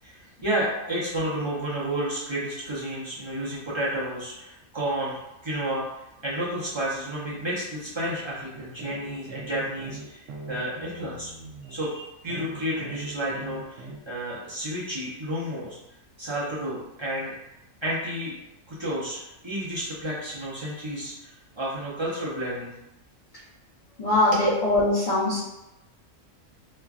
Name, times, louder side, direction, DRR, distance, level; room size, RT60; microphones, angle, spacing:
voice 1, 0.0-11.3 11.7-11.9 12.2-15.8 16.2-17.3 17.8-18.3 18.7-22.7 24.3-24.4, right 1 dB, 30° right, -8 dB, 0.5 m, -31 dB
sound 1, 8.5-11.8 12.3-14.0, right 2 dB, 75° right, 0.9 m, -41 dB
voice 2, 24.0-25.4, left 2 dB, 40° left, -12 dB, 0.9 m, -22 dB
3.1 x 2.2 x 2.4 m, 0.92 s
omnidirectional pair, 1.4 m